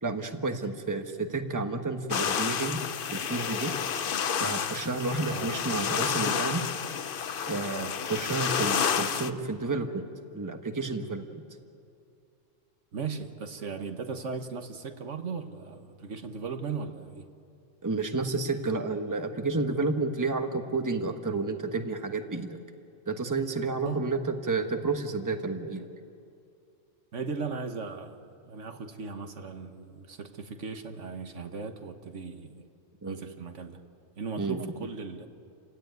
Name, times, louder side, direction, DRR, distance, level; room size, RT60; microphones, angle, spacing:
voice 1, 0.0-2.8 3.1-3.7 4.4-6.6 7.5-10.1 10.3-11.4 17.8-22.6 23.1-25.9 33.0-33.2 34.4-34.7, right 3 dB, 15° right, 5 dB, 1.2 m, -31 dB
sound 1, 2.1-9.3, left 7 dB, 50° left, 0.8 m, -30 dB
voice 2, 12.9-17.3 23.8-24.0 27.1-32.7 33.1-33.8 34.2-35.3, right 5 dB, 70° right, 7 dB, 1.6 m, -37 dB
30.0 x 16.5 x 9.4 m, 2.4 s
omnidirectional pair, 1.3 m